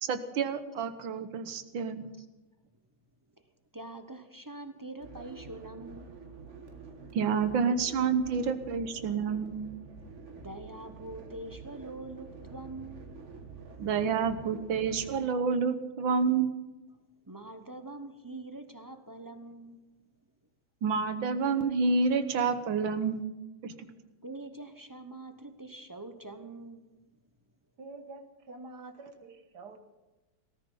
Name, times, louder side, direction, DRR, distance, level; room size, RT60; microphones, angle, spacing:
voice 1, 0.0-2.1 7.1-9.6 13.8-16.5 20.8-23.3 23.6-23.7, right 5 dB, 85° right, 11 dB, 1.8 m, -28 dB
voice 2, 3.7-6.3 10.3-13.1 17.3-19.8 24.2-26.9, right 2 dB, 25° right, 8 dB, 0.4 m, -44 dB
sound 1, 5.0-15.2, right 4 dB, 40° right, 1.6 m, -48 dB
voice 3, 27.8-29.8, right 3 dB, 60° right, 7 dB, 1.9 m, -47 dB
18.0 x 14.0 x 5.5 m, 1.1 s
omnidirectional pair, 2.1 m